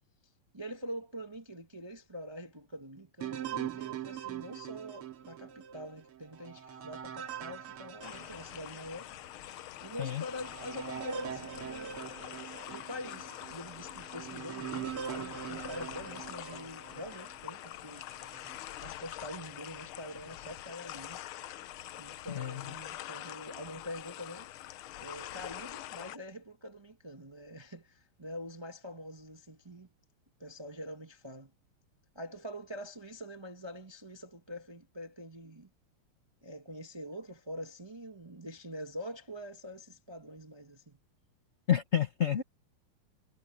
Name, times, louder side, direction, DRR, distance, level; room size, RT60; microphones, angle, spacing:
voice 1, 0.5-9.1 9.8-12.2 12.7-18.1 18.8-21.2 22.0-24.5 25.0-29.9 30.4-31.5 32.1-35.7 36.4-41.0, equal, 20° right, 0.7 m, -45 dB
sound 1, 3.2-9.0 9.5-9.6 10.2-17.4 18.0-18.6, right 9 dB, 85° right, 2.5 m, -42 dB
sound 2, 8.0-26.2, left 14 dB, 75° left, 1.6 m, -45 dB
voice 2, 41.7-42.4, left 10 dB, 45° left, 0.9 m, -29 dB
omnidirectional pair, 2.4 m